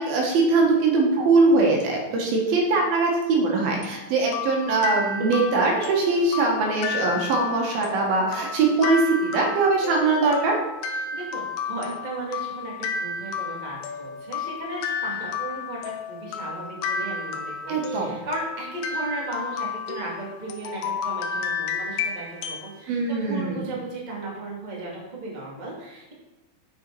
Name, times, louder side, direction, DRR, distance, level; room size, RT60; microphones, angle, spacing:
voice 1, 0.0-10.6 17.7-18.2 22.9-23.7, right 3 dB, 70° right, 0 dB, 3.1 m, -22 dB
sound 1, 3.8-22.7, left 5 dB, 80° left, 2.6 m, -32 dB
voice 2, 11.1-15.8 16.1-26.1, right 2 dB, 20° right, -4 dB, 1.0 m, -35 dB
7.3 x 6.8 x 4.6 m, 1.0 s
omnidirectional pair, 4.5 m